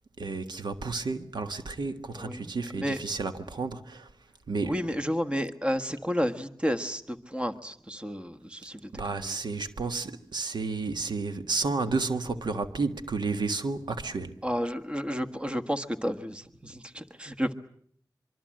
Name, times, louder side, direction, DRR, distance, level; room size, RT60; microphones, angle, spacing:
voice 1, 0.2-4.1 4.5-5.0 8.9-14.4, right 3 dB, 90° right, 1.6 m, -31 dB
voice 2, 4.7-8.8 9.1-9.3 14.4-17.5, equal, 15° right, 1.5 m, -31 dB
24.5 x 24.5 x 7.7 m
wide cardioid pair, 95°, 7 cm